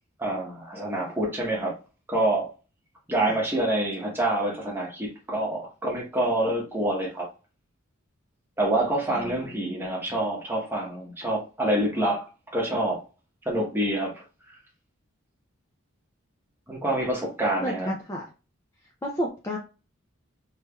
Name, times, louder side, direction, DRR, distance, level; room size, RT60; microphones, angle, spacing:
voice 1, 0.2-1.7 2.1-2.5 3.1-7.3 8.6-12.3 12.5-13.0 13.4-14.1 16.7-17.9, right 1 dB, 10° right, 0.9 m, -26 dB
voice 2, 9.1-9.9 17.6-18.2 19.0-19.6, equal, 15° left, 0.4 m, -32 dB
3.2 x 3.0 x 2.3 m
head